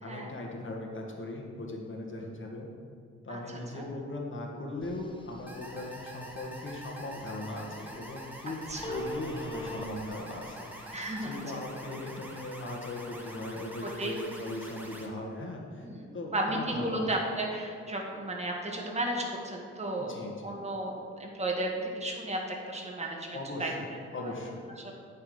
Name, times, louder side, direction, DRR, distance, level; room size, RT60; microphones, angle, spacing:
voice 1, 0.0-2.7 3.2-10.9 11.2-15.9 16.1-17.1 20.0-20.5 23.3-24.6, left 2 dB, 40° left, 0 dB, 1.8 m, -39 dB
voice 2, 3.3-3.9 8.7-9.0 10.9-11.4 14.0-14.1 15.8-16.1 16.3-20.2 20.4-23.3 23.6-23.7 24.8-24.9, right 1 dB, 20° right, -1 dB, 1.7 m, -34 dB
Telephone, 4.8-11.2, right 1 dB, 15° left, 0.9 m, -45 dB
sound 1, 5.5-15.1, right 1 dB, 5° right, 1.5 m, -46 dB
9.3 x 4.4 x 6.6 m, 2.3 s
cardioid pair, 70°, 29 cm